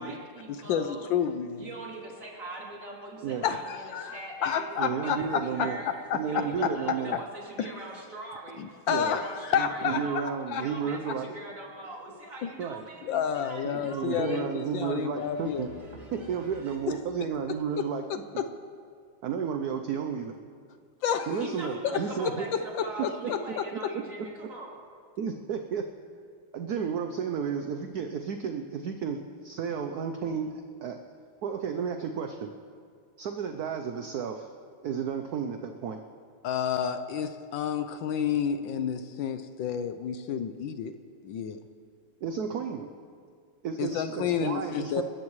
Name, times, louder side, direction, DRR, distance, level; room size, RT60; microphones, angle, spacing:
voice 1, 0.0-1.0 1.5-5.9 6.2-10.3 10.5-14.5 15.1-16.8 21.3-24.9, right 1 dB, 40° right, -3 dB, 3.3 m, -42 dB
voice 2, 0.7-1.7 3.4-6.4 7.1-7.2 7.6-7.7 8.6-10.6 11.1-11.2 12.4-12.5 13.0-15.7 21.0-21.4 23.0-23.6 36.4-40.9 41.2-41.6 43.8-45.0, left 8 dB, 70° left, 9 dB, 1.3 m, -30 dB
voice 3, 4.8-5.8 6.1-7.2 8.9-9.2 9.5-11.3 12.6-12.8 13.6-15.7 16.1-18.0 19.2-20.4 21.3-22.5 23.2-23.3 23.7-24.0 25.2-25.9 26.5-31.0 31.4-32.5 33.2-34.5 34.8-36.0 42.2-42.9 43.6-45.0, right 7 dB, 65° right, 6 dB, 1.0 m, -32 dB
28.0 x 14.5 x 3.2 m, 2.2 s
omnidirectional pair, 2.3 m